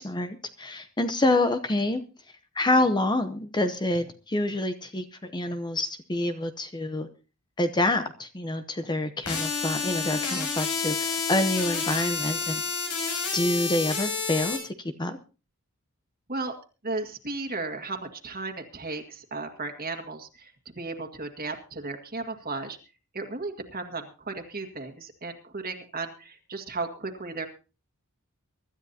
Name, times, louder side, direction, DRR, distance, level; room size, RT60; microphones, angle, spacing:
voice 1, 0.0-2.0 2.3-7.1 7.6-12.6 13.3-15.2, left 1 dB, 20° left, 9 dB, 0.8 m, -27 dB
sound 1, 9.3-14.6, left 5 dB, 85° left, 7.1 m, -29 dB
voice 2, 16.8-22.8 23.1-27.5, right 3 dB, 45° right, 3 dB, 1.9 m, -35 dB
24.0 x 13.0 x 2.8 m, 0.33 s
head